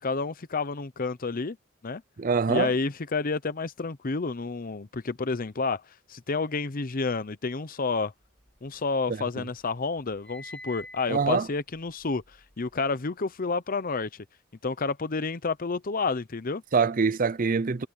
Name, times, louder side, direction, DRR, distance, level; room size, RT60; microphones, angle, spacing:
voice 1, 0.0-1.6 1.8-2.0 2.5-5.8 6.1-8.1 8.6-14.2 14.6-16.6, left 4 dB, 40° left, 0.7 m, -30 dB
voice 2, 2.2-2.7 11.1-11.5 16.7-17.9, right 5 dB, 40° right, 0.5 m, -24 dB
sound 1, 8.2-9.3 9.6-13.0, left 1 dB, 5° left, 4.9 m, -48 dB
head